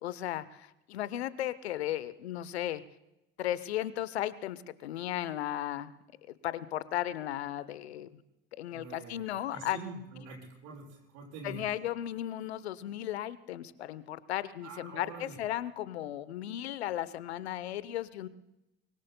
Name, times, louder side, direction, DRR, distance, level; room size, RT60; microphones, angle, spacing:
voice 1, 0.0-2.8 3.4-5.9 6.4-8.1 8.5-9.8 11.4-18.3, left 13 dB, 85° left, 17 dB, 0.7 m, -35 dB
voice 2, 8.7-11.7 14.6-15.4, right 3 dB, 65° right, -2 dB, 6.5 m, -46 dB
24.0 x 22.5 x 2.2 m, 0.92 s
hypercardioid pair, 65°, 32 cm